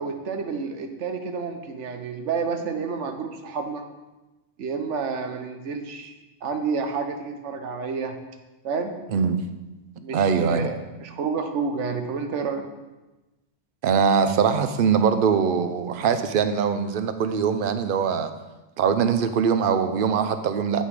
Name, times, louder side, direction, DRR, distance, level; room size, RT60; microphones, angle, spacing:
voice 1, 0.0-3.8 4.6-6.1 6.4-8.2 8.6-8.9 10.0-12.7, right 5 dB, 85° right, 6 dB, 1.1 m, -29 dB
voice 2, 9.1-9.4 10.1-10.7 13.8-18.3 18.8-20.8, right 6 dB, 55° right, 10 dB, 0.7 m, -22 dB
8.5 x 5.4 x 4.8 m, 1.1 s
omnidirectional pair, 1.2 m